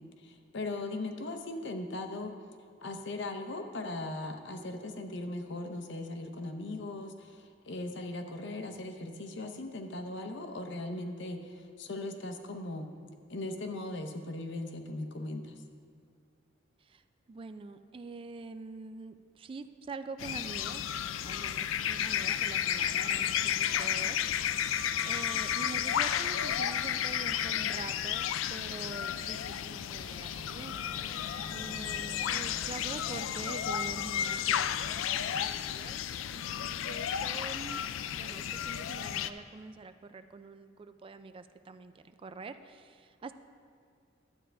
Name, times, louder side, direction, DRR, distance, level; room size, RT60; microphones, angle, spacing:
voice 1, 0.2-2.3 2.8-12.9 13.3-15.6, left 2 dB, 65° left, 6 dB, 0.8 m, -39 dB
voice 2, 17.3-20.9 21.2-24.7 25.0-30.7 31.5-35.0 35.2-37.8 38.1-43.3, right 3 dB, 25° right, 10 dB, 0.3 m, -45 dB
sound 1, 20.2-39.3, left 9 dB, 80° left, 0.3 m, -32 dB
sound 2, 29.9-36.0, left 1 dB, 30° left, 0.5 m, -50 dB
12.5 x 8.8 x 3.4 m, 2.2 s
head